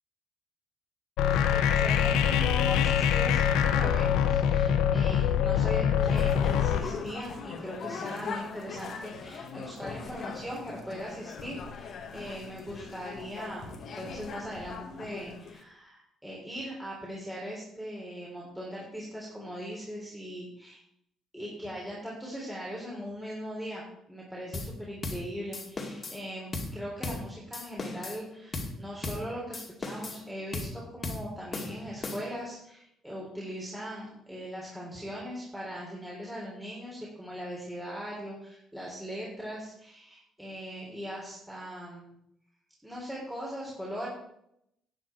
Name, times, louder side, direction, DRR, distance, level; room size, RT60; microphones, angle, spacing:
sound 1, 1.2-6.8, left 9 dB, 80° left, 0.9 m, -24 dB
voice 1, 1.5-20.8 21.3-23.8 24.1-42.2 42.8-44.1, equal, 10° right, -5 dB, 3.6 m, -40 dB
sound 2, 6.0-15.6, left 5 dB, 60° left, 1.7 m, -40 dB
sound 3, 24.5-24.8 25.0-25.3 25.5-26.2 26.5-26.8 27.0-27.3 27.5-28.2 28.5-28.8 29.0-29.3 29.5-30.2 30.5-30.8 31.0-31.3 31.5-32.4, left 2 dB, 30° left, 2.4 m, -36 dB
11.0 x 8.7 x 4.5 m, 0.78 s
supercardioid pair, 75°, 0 cm